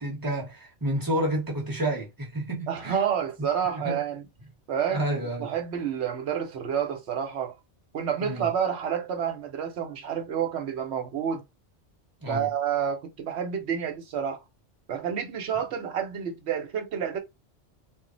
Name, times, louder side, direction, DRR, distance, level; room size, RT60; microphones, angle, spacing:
voice 1, 0.0-3.0 3.4-3.5 3.7-4.0 4.9-5.5 8.2-8.5 12.2-12.5, right 1 dB, 20° right, 0.9 m, -30 dB
voice 2, 2.7-4.2 4.7-7.6 7.9-11.4 12.3-14.4 14.9-17.2, right 8 dB, 65° right, 0.9 m, -29 dB
2.4 x 2.0 x 3.7 m
omnidirectional pair, 1.3 m